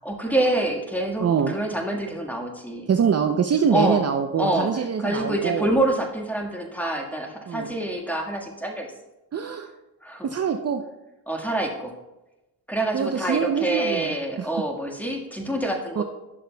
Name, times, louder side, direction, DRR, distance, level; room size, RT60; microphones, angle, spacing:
voice 1, 0.0-2.9 3.7-4.0 4.4-4.7 5.0-8.9 10.0-10.3 11.3-11.9 12.7-16.0, right 1 dB, 5° left, 0 dB, 1.5 m, -26 dB
voice 2, 1.2-1.5 2.9-5.7 7.5-7.7 9.3-9.7 10.2-10.8 12.9-14.5 16.0-16.1, right 7 dB, 40° right, 6 dB, 0.6 m, -24 dB
11.0 x 6.5 x 2.2 m, 0.99 s
supercardioid pair, 55°, 38 cm